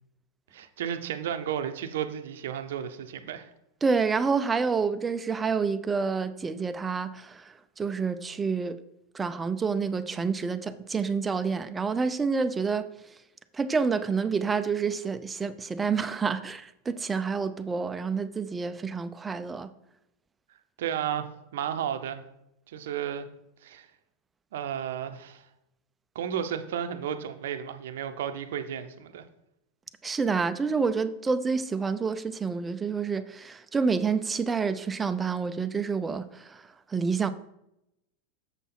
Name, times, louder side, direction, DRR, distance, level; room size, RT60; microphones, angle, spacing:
voice 1, 0.5-3.5 20.8-22.2 22.7-23.3 23.6-23.9 24.5-25.4 26.1-29.2, right 9 dB, 70° right, 0.7 m, -33 dB
voice 2, 3.8-8.8 9.1-13.2 13.5-19.7 30.0-37.3, right 5 dB, 20° right, 0.6 m, -28 dB
7.2 x 5.6 x 4.3 m
hypercardioid pair, 95°, 0 cm